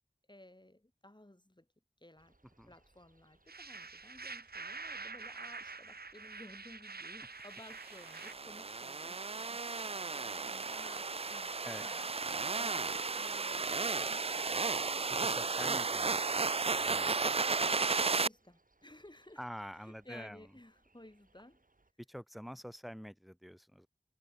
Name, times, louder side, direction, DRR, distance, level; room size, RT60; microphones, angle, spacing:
voice 1, 0.3-1.7 2.0-2.4 2.7-11.5 11.8-12.1 12.3-14.6 17.9-19.4 19.8-21.6, left 1 dB, 30° left, 7.8 m, -56 dB
sound 1, 2.2-21.9, right 2 dB, 60° right, 5.2 m, -72 dB
sound 2, 3.5-8.3, right 4 dB, 80° right, 1.0 m, -46 dB
sound 3, 7.8-18.3, right 4 dB, 40° right, 0.4 m, -34 dB
voice 2, 15.1-16.5 16.8-17.4 19.4-20.5 22.1-23.9, equal, ahead, 0.8 m, -47 dB
wide cardioid pair, 40°, 16 cm